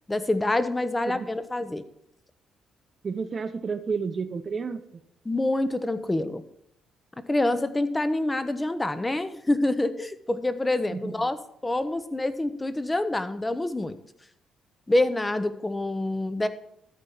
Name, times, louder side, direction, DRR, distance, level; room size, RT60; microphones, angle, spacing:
voice 1, 0.1-1.8 5.2-6.4 7.2-14.0 14.9-16.5, left 2 dB, 15° left, 12 dB, 0.7 m, -26 dB
voice 2, 3.0-5.0 10.9-11.3, right 5 dB, 40° right, 9 dB, 0.8 m, -31 dB
13.0 x 4.4 x 5.6 m, 0.76 s
cardioid pair, 90°, 0 cm